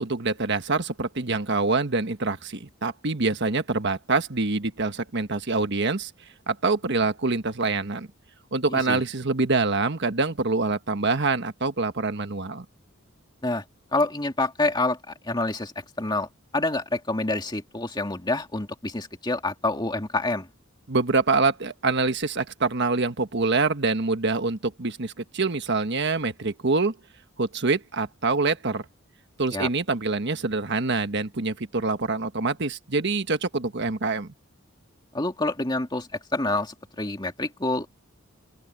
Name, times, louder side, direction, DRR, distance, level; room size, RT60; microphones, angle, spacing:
voice 1, 0.0-6.1 6.5-8.1 8.5-12.6 20.9-27.0 27.4-28.8 29.4-34.3, right 3 dB, 55° right, 1.4 m, -25 dB
voice 2, 8.7-9.0 13.4-13.6 13.9-20.5 29.5-29.7 35.1-37.9, left 2 dB, 20° left, 2.3 m, -27 dB
open air
head